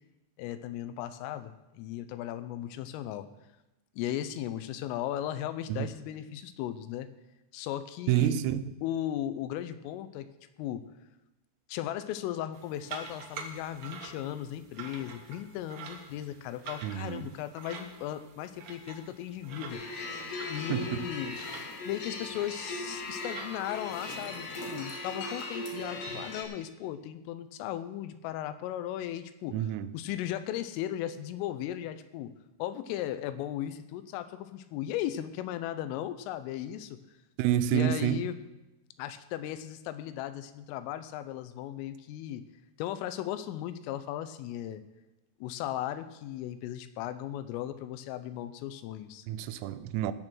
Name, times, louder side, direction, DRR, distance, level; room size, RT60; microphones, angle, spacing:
voice 1, 0.4-3.3 4.0-7.1 7.5-8.4 8.8-10.3 10.6-10.9 11.7-20.0 20.5-21.4 21.9-29.6 29.9-32.3 32.6-37.0 37.7-38.4 39.0-42.4 42.8-44.8 45.4-49.3, left 12 dB, 85° left, 3.2 m, -36 dB
voice 2, 8.1-8.6 16.8-17.2 20.7-21.1 29.5-29.9 37.4-38.3 49.3-50.1, right 12 dB, 90° right, 3.3 m, -28 dB
sound 1, 12.5-25.0, right 5 dB, 70° right, 2.3 m, -47 dB
sound 2, 19.7-26.4, left 2 dB, 65° left, 3.9 m, -38 dB
17.5 x 6.7 x 6.2 m
omnidirectional pair, 5.8 m